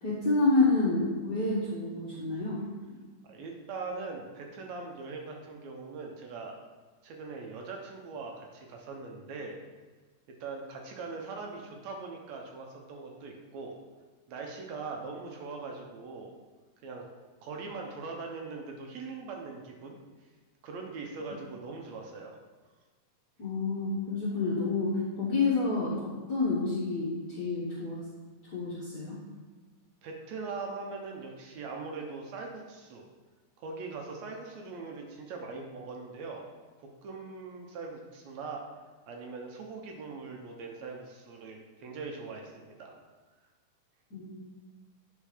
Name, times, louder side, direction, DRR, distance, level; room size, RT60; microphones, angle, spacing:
voice 1, 0.0-2.6 23.4-28.0 28.5-29.2 44.1-44.3, left 3 dB, 65° left, -7 dB, 1.0 m, -29 dB
voice 2, 3.2-6.6 7.0-9.6 10.4-13.7 14.3-16.3 16.8-17.0 17.4-20.0 20.6-22.4 30.0-33.1 33.6-36.5 36.8-38.6 39.1-42.9, right 4 dB, 70° right, 1 dB, 1.8 m, -41 dB
8.7 x 4.6 x 5.0 m, 1.4 s
omnidirectional pair, 3.8 m